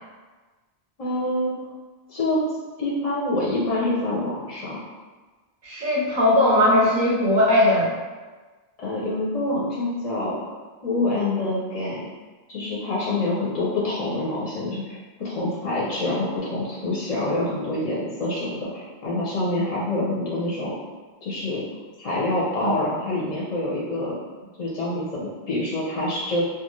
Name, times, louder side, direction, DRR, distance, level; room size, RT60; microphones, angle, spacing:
voice 1, 1.0-1.6 2.1-2.4 2.8-4.8 8.8-10.5 10.8-12.1 12.5-20.8 21.2-21.7 22.0-24.2 24.6-26.4, left 2 dB, 45° left, -6 dB, 0.5 m, -26 dB
voice 2, 5.6-7.9 22.6-22.7, left 1 dB, 50° right, -4 dB, 0.7 m, -19 dB
2.5 x 2.3 x 3.0 m, 1.3 s
omnidirectional pair, 1.1 m